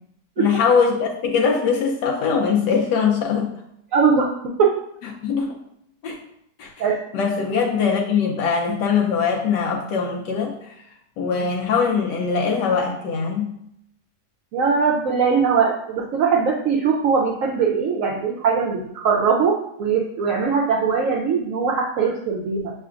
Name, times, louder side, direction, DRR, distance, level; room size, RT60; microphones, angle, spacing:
voice 1, 0.4-3.5 5.2-5.6 6.0-6.2 6.6-6.7 7.1-10.7 11.2-13.5, left 6 dB, 90° left, 0 dB, 1.2 m, -21 dB
voice 2, 3.9-4.3 4.6-4.7 6.8-7.0 7.5-7.6 11.4-11.5 14.5-22.7, right 5 dB, 65° right, -1 dB, 0.8 m, -21 dB
6.7 x 3.2 x 2.4 m, 0.75 s
omnidirectional pair, 1.8 m